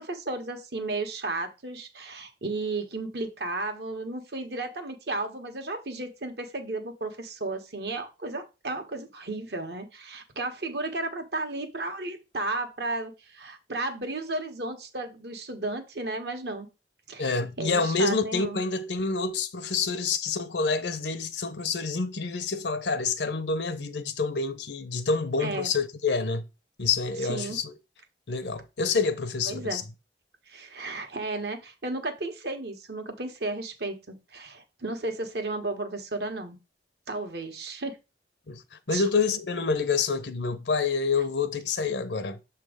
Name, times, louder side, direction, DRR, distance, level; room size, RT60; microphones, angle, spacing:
voice 1, 0.0-16.7 17.1-18.6 25.4-25.7 27.3-27.6 29.4-29.8 30.5-36.6 37.1-37.9 38.9-39.1, right 2 dB, 65° right, 1.3 m, -34 dB
voice 2, 17.2-26.4 26.8-27.7 28.3-29.8 38.5-42.4, left 4 dB, 75° left, 0.8 m, -27 dB
7.1 x 3.3 x 5.0 m
head